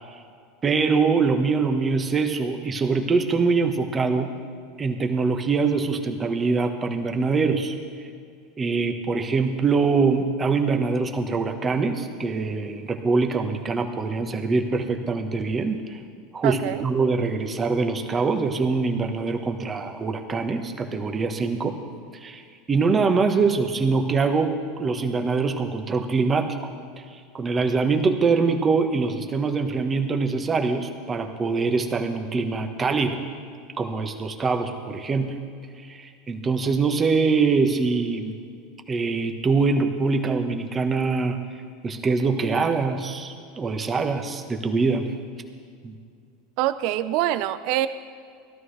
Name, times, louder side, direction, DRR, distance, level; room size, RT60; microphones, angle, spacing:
voice 1, 0.6-4.3 4.8-7.7 8.6-16.0 16.3-21.8 22.2-22.4 22.7-26.5 27.3-33.2 33.8-35.4 35.8-38.4 38.9-41.4 41.8-45.1 45.8-46.0, right 4 dB, 25° right, 6 dB, 1.3 m, -23 dB
voice 2, 16.4-16.8 46.6-47.9, right 13 dB, 60° right, 13 dB, 0.6 m, -24 dB
17.5 x 12.5 x 3.4 m, 2.2 s
hypercardioid pair, 90°, 0 cm